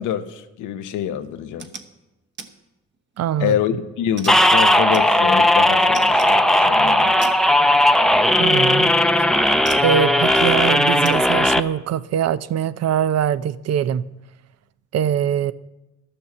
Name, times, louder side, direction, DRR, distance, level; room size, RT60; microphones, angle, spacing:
voice 1, 0.0-1.7 3.4-7.1, left 10 dB, 90° left, 0.9 m, -26 dB
sound 1, 1.4-1.9 2.4-2.5 2.9-3.4 4.2-5.5 5.9-6.4 7.2-7.4 8.7-8.9 9.7-10.0 11.0-11.2, right 4 dB, 40° right, 1.1 m, -38 dB
voice 2, 3.2-3.5 8.4-8.9 9.8-14.0 14.9-15.5, right 9 dB, 55° right, 0.5 m, -22 dB
sound 2, 4.3-11.6, left 1 dB, ahead, 0.5 m, -16 dB
12.0 x 7.0 x 7.1 m
cardioid pair, 90°, 30 cm